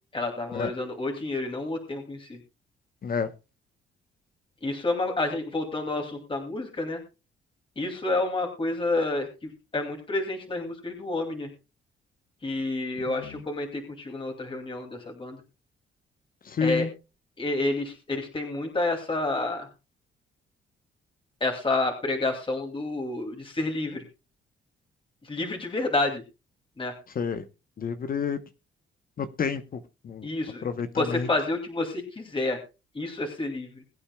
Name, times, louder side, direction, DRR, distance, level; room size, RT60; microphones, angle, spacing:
voice 1, 0.1-2.4 4.6-7.0 7.8-9.3 9.7-11.5 12.4-15.4 16.6-16.9 17.4-19.7 21.4-24.0 25.3-26.2 26.8-26.9 30.2-30.6 31.0-32.6 33.0-33.7, left 2 dB, 25° left, 2.6 m, -29 dB
voice 2, 13.1-13.4 16.4-16.9 27.1-27.4 27.8-28.4 29.2-30.3 30.6-31.3, left 5 dB, 45° left, 1.0 m, -30 dB
22.0 x 8.8 x 2.3 m
cardioid pair, 90°, 20 cm